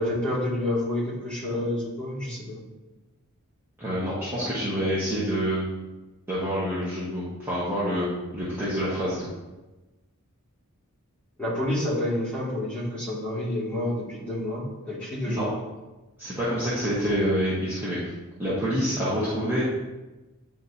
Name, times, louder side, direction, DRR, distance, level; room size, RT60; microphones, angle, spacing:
voice 1, 0.0-2.6 11.4-15.5, left 1 dB, 5° left, -9 dB, 2.0 m, -29 dB
voice 2, 3.8-5.7 6.3-8.1 8.3-9.3 15.3-15.4 16.2-18.1 18.4-19.6, equal, 10° right, -11 dB, 1.2 m, -27 dB
9.4 x 3.7 x 2.7 m, 1.1 s
head